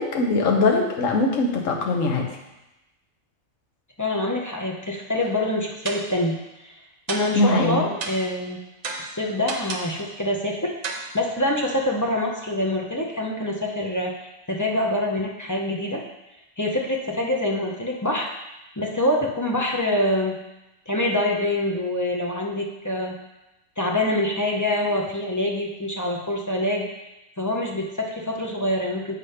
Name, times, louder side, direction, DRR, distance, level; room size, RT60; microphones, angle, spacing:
voice 1, 0.0-2.3 7.3-7.8, left 2 dB, 70° left, 1 dB, 1.3 m, -21 dB
voice 2, 4.0-6.4 6.6-6.7 7.1-8.6 9.0-10.7 11.1-16.0 16.6-18.3 18.8-20.4 20.9-23.2 23.8-26.9 27.4-29.1, left 1 dB, 20° left, -1 dB, 0.5 m, -25 dB
sound 1, 5.2-5.5 5.8-6.3 7.1-7.5 8.0-8.4 8.8-10.0 10.8-11.1, right 3 dB, 60° right, 1.1 m, -33 dB
8.2 x 3.3 x 5.6 m, 0.97 s
omnidirectional pair, 1.4 m